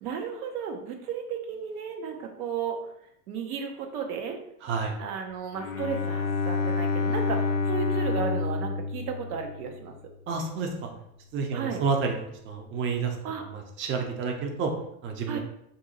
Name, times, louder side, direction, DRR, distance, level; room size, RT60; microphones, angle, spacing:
voice 1, 0.0-2.8 3.3-4.4 5.0-9.9 11.5-11.8 13.2-13.5 15.3-15.4, right 6 dB, 70° right, 3 dB, 0.8 m, -34 dB
voice 2, 4.6-4.9 10.3-10.9 11.3-12.2 12.5-13.1 13.5-14.7 15.0-15.4, right 5 dB, 25° right, 2 dB, 0.5 m, -29 dB
Bowed string instrument, 5.6-9.9, left 4 dB, 40° left, 0.6 m, -28 dB
2.7 x 2.7 x 3.8 m, 0.75 s
hypercardioid pair, 90°, 46 cm